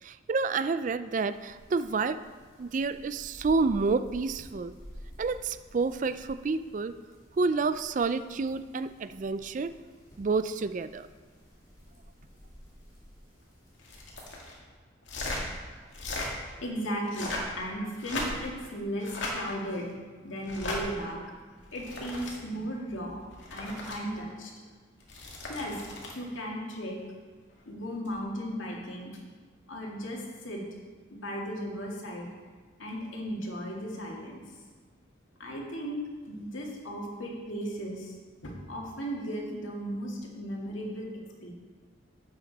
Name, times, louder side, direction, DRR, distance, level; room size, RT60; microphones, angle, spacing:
voice 1, 0.0-2.2 2.6-4.7 5.2-6.9 7.4-9.7 10.2-11.1, right 4 dB, 40° right, 13 dB, 0.3 m, -29 dB
sound 1, 1.2-14.3, equal, 20° left, 2.9 m, -52 dB
sound 2, 13.8-14.5 15.0-15.4 15.9-16.3 17.0-17.5 18.0-18.6 19.0-19.3 20.4-20.8 21.6-22.3 23.2-24.0 25.0-26.2 28.0-28.2, left 2 dB, 70° left, 2.3 m, -36 dB
voice 2, 16.6-21.2 21.5-23.2 23.5-24.5 25.5-25.8 26.1-27.0 27.7-29.2 29.7-30.6 31.1-32.3 32.8-34.4 35.4-36.0 36.3-38.2 38.4-41.1 41.4-41.5, equal, 85° left, -2 dB, 2.2 m, -36 dB
11.5 x 8.6 x 4.1 m, 1.5 s
head